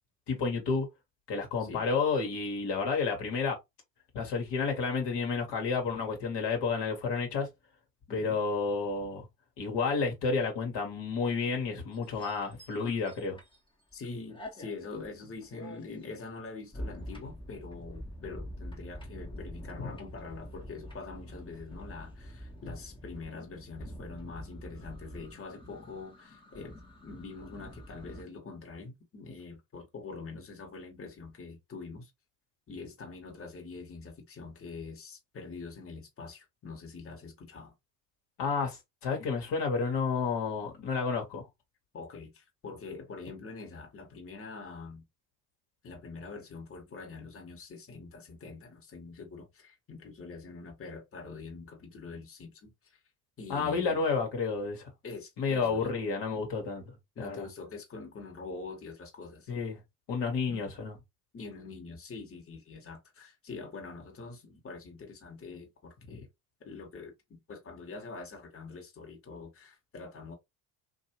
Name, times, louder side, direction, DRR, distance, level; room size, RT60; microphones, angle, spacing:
voice 1, 0.3-0.9 1.3-3.6 4.1-7.5 8.1-9.3 9.6-13.4 19.8-19.9 38.4-41.5 53.5-54.9 55.4-56.9 57.2-57.5 59.5-59.8 60.1-60.9 66.1-66.2, left 4 dB, 55° left, 1.3 m, -31 dB
sound 1, 11.9-14.0 14.3-28.2, equal, 10° left, 1.0 m, -46 dB
voice 2, 13.9-32.1 32.7-37.7 41.9-45.0 45.8-53.0 53.4-54.0 55.0-55.9 57.1-59.5 60.5-60.7 61.3-66.3 66.6-70.3, left 4 dB, 25° left, 1.3 m, -44 dB
2.6 x 2.4 x 2.9 m
hypercardioid pair, 65°, 49 cm